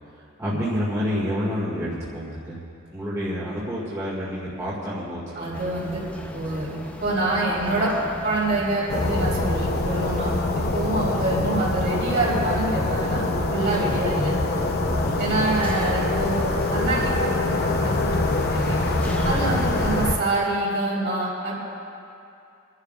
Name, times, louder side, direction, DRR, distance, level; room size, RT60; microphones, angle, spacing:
voice 1, 0.4-2.6 2.9-5.5 15.0-15.3 19.4-19.9, equal, 15° right, -8 dB, 2.0 m, -29 dB
voice 2, 5.4-6.0 6.3-8.0 8.2-13.2 13.5-14.3 15.2-18.8 19.2-21.5, right 2 dB, 55° right, -6 dB, 3.9 m, -26 dB
sound 1, 5.5-19.9, equal, 5° left, 0.8 m, -37 dB
sound 2, 8.9-20.2, left 2 dB, 50° left, 0.8 m, -24 dB
28.5 x 11.5 x 2.5 m, 2.5 s
head